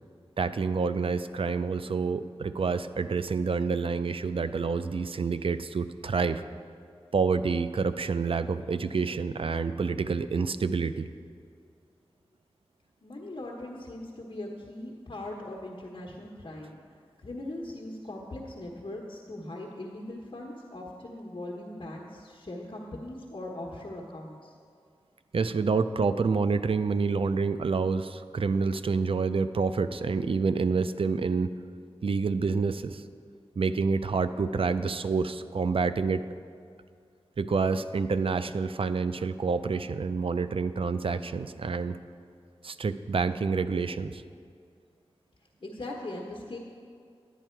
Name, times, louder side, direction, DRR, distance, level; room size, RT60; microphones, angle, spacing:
voice 1, 0.4-6.4 7.1-11.1 25.3-31.5 32.0-33.0 33.6-36.2 37.4-42.0 42.6-44.2, right 4 dB, 60° right, 11 dB, 0.4 m, -28 dB
voice 2, 13.0-16.8 17.2-24.5 45.6-46.6, left 1 dB, 50° left, -2 dB, 1.2 m, -40 dB
11.0 x 9.1 x 4.5 m, 2.3 s
wide cardioid pair, 65°, 10 cm